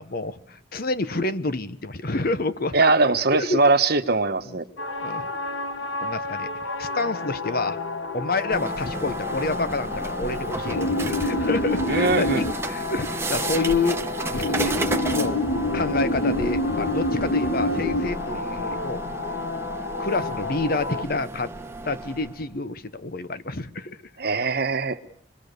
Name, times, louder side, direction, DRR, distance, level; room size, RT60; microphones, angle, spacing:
voice 1, 0.0-3.7 4.5-4.6 5.0-5.3 6.0-7.8 8.1-14.0 14.3-14.8 15.1-15.4 15.7-19.1 20.0-21.5 21.8-24.0, left 3 dB, 50° left, 13 dB, 1.1 m, -28 dB
voice 2, 2.7-4.6 11.9-12.4 24.2-25.0, right 3 dB, 55° right, 8 dB, 1.2 m, -21 dB
sound 1, 4.8-21.0, left 2 dB, 85° left, 1.6 m, -28 dB
sound 2, 8.5-22.4, right 2 dB, 15° right, 1.2 m, -33 dB
25.5 x 22.0 x 6.8 m, 0.67 s
head